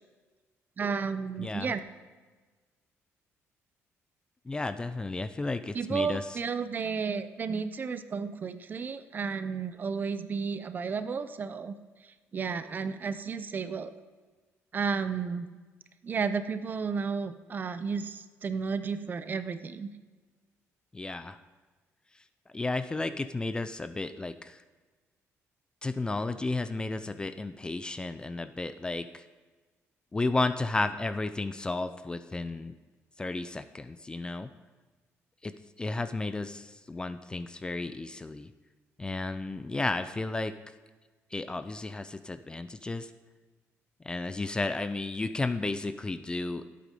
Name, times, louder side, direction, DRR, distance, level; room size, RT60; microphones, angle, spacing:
voice 1, 0.8-1.8 5.7-11.7 12.3-13.9 14.7-15.5 16.0-19.9, right 5 dB, 35° right, 11 dB, 0.6 m, -32 dB
voice 2, 1.4-1.7 4.5-6.2 20.9-21.4 22.5-24.6 25.8-29.2 30.1-32.7 33.2-34.5 35.4-38.5 39.0-40.5 41.3-43.1 44.0-46.6, left 2 dB, 15° left, 11 dB, 0.4 m, -33 dB
17.0 x 8.4 x 3.7 m, 1.4 s
cardioid pair, 130°, 5 cm